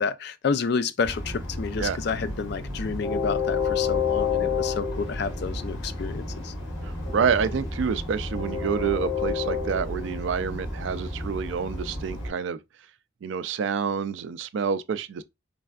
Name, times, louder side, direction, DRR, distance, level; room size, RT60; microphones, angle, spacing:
voice 1, 0.0-6.5, left 5 dB, 55° left, 0.3 m, -29 dB
Train, 1.0-12.3, left 4 dB, 70° left, 1.4 m, -30 dB
voice 2, 6.8-12.6 13.2-15.2, right 6 dB, 60° right, 0.3 m, -28 dB
4.3 x 3.3 x 2.3 m
head